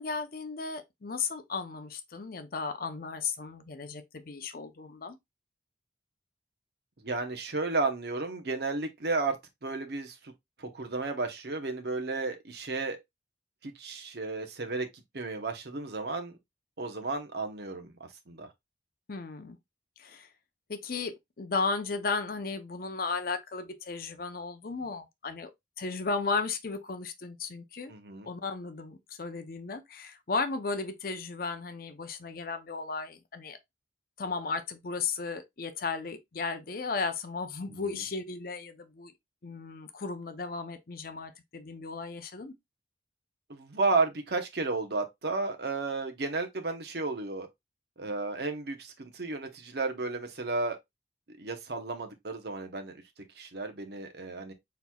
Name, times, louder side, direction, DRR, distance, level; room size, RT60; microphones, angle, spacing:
voice 1, 0.0-5.2 19.1-19.6 20.0-20.3 20.7-25.5 25.8-27.9 28.2-33.6 34.2-39.1 39.4-42.5, left 4 dB, 50° left, 0.6 m, -35 dB
voice 2, 7.0-9.4 9.6-10.3 10.6-13.0 13.6-16.4 16.8-18.5 27.9-28.3 37.7-37.8 43.5-47.5 48.0-50.8 51.3-52.9 53.4-54.5, right 3 dB, 60° right, 0.9 m, -33 dB
4.4 x 4.0 x 2.3 m
head